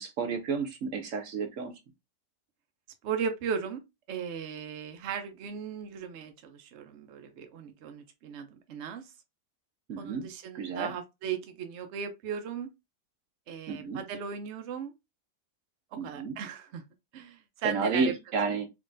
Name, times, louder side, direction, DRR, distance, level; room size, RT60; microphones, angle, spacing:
voice 1, 0.0-1.7 9.9-10.3 10.5-10.9 13.7-14.0 16.0-16.4 17.6-18.7, right 4 dB, 60° right, 1.0 m, -31 dB
voice 2, 3.0-3.8 4.1-9.1 10.0-12.7 13.5-14.9 16.0-16.8 17.1-18.1 18.5-18.6, right 7 dB, 75° right, 0.6 m, -37 dB
3.7 x 3.1 x 2.5 m
omnidirectional pair, 1.8 m